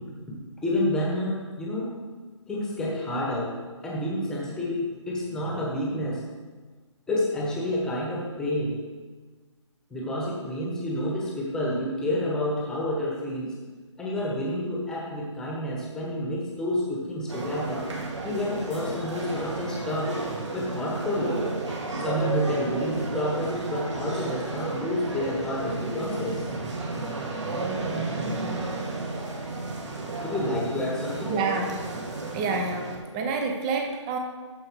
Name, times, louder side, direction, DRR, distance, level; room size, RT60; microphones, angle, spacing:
voice 1, 0.6-2.0 2.5-3.6 3.8-6.2 7.1-8.8 9.9-13.5 14.0-17.9 18.2-20.2 20.5-21.4 22.0-26.6 30.2-31.4, left 1 dB, 5° left, -4 dB, 1.2 m, -29 dB
sound 1, 17.3-33.0, right 2 dB, 65° right, 2.2 m, -32 dB
voice 2, 31.3-31.8 32.3-34.2, right 4 dB, 15° right, 4 dB, 0.7 m, -28 dB
13.5 x 4.7 x 4.7 m, 1.4 s
hypercardioid pair, 160°, 16 cm